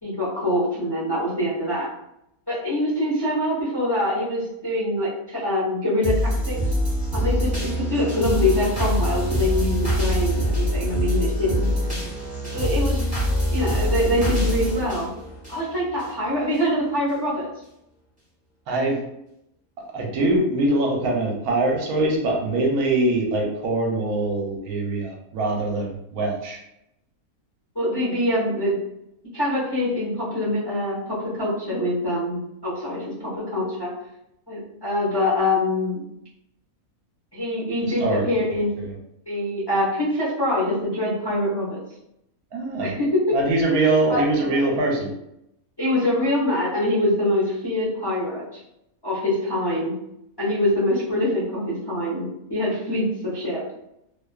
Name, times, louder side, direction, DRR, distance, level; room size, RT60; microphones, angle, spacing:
voice 1, 0.0-1.9 2.5-6.5 7.1-11.7 12.5-13.0 13.5-15.1 15.5-17.5 27.7-28.7 29.3-33.9 34.5-36.0 37.3-38.8 39.3-41.8 42.8-43.3 44.1-44.2 45.8-48.6 49.0-49.9 50.4-52.2 52.5-53.7, left 1 dB, 20° left, -8 dB, 0.7 m, -24 dB
sound 1, 6.0-16.1 16.5-16.6, equal, 5° right, 1.0 m, -24 dB
voice 2, 18.7-19.0 19.9-26.6 37.8-38.4 38.8-38.9 42.5-42.9 43.3-45.1, right 2 dB, 85° right, -1 dB, 1.1 m, -23 dB
2.5 x 2.5 x 2.3 m, 0.81 s
omnidirectional pair, 1.5 m